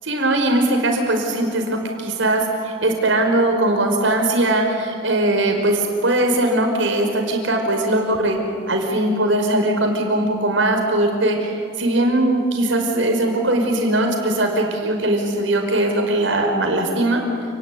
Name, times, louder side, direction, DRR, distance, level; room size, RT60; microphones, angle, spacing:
voice 1, 0.0-8.4 8.7-17.2, right 1 dB, 85° right, 3 dB, 5.4 m, -20 dB
30.0 x 19.5 x 9.5 m, 2.4 s
head